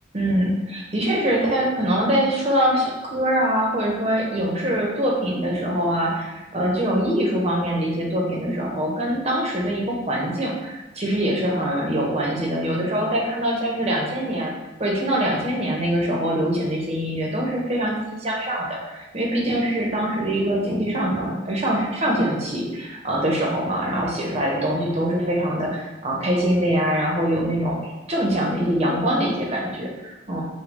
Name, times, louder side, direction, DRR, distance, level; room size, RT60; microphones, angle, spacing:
voice 1, 0.1-14.5 14.8-30.4, right 1 dB, 35° right, -2 dB, 0.8 m, -23 dB
5.0 x 2.2 x 3.4 m, 1.1 s
head